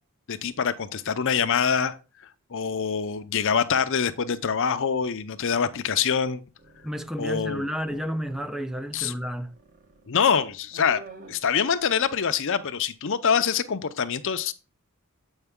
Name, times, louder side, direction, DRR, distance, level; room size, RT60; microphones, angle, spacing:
voice 1, 0.3-1.9 2.5-6.4 7.2-7.7 8.9-9.1 10.1-11.0 11.3-14.5, left 6 dB, 60° left, 0.6 m, -25 dB
sound 1, 6.6-12.3, right 2 dB, 40° right, 1.1 m, -51 dB
voice 2, 6.8-9.5, equal, ahead, 0.4 m, -31 dB
8.0 x 5.2 x 3.6 m
head